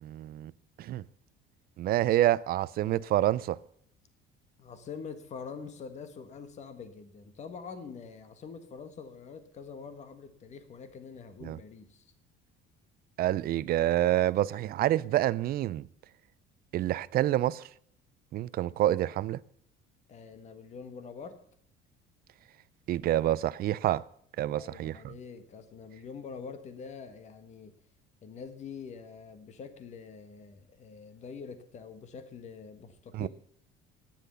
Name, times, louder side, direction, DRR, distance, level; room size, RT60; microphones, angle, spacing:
voice 1, 0.0-0.5 0.8-1.0 1.8-3.6 11.4-11.6 13.2-15.8 16.7-17.6 18.3-19.4 22.9-24.0 24.4-25.1 33.1-33.3, right 13 dB, 45° right, 0.5 m, -27 dB
voice 2, 4.6-12.1 20.1-21.4 24.5-27.7 28.2-33.3, left 5 dB, 35° left, 1.5 m, -45 dB
14.0 x 10.5 x 6.9 m
cardioid pair, 160°, 21 cm